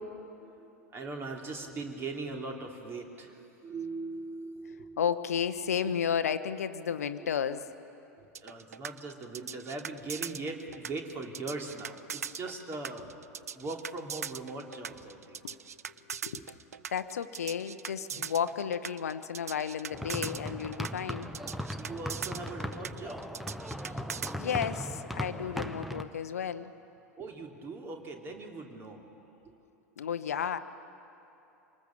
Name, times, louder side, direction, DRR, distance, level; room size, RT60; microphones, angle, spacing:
voice 1, 0.4-5.0 8.2-13.1 13.5-15.4 16.2-16.4 18.1-18.3 21.8-23.3 23.8-24.1 27.2-29.1 29.4-29.5, right 3 dB, 30° right, 2 dB, 2.9 m, -40 dB
voice 2, 5.0-7.6 16.1-16.4 16.9-21.3 23.9-24.0 24.4-26.7 30.0-30.6, left 8 dB, 70° left, 12 dB, 0.8 m, -32 dB
sound 1, 8.3-24.3, right 7 dB, 75° right, 0.5 m, -40 dB
sound 2, 19.9-26.0, equal, ahead, 1.0 m, -38 dB
26.5 x 19.5 x 7.3 m, 2.9 s
figure-of-eight pair, 85°, 8 cm